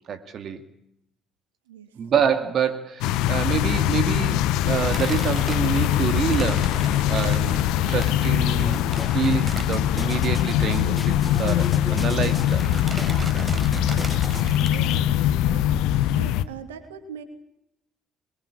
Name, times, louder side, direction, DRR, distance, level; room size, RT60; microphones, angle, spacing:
voice 1, 0.1-0.6 2.0-6.7 7.1-7.6 7.9-8.8 9.1-12.7, right 7 dB, 50° right, 9 dB, 2.4 m, -27 dB
voice 2, 1.7-2.0 13.9-17.2, right 8 dB, 75° right, 9 dB, 3.0 m, -42 dB
sound 1, 3.0-16.4, left 12 dB, 65° left, 1.2 m, -22 dB
sound 2, 4.7-10.3 10.6-10.7 11.0-11.1 12.1-12.4 12.6-15.0, right 4 dB, 30° right, 4.4 m, -36 dB
sound 3, 8.5-14.5, left 3 dB, 20° left, 1.4 m, -35 dB
27.5 x 23.0 x 8.9 m, 0.76 s
figure-of-eight pair, 50°, 0 cm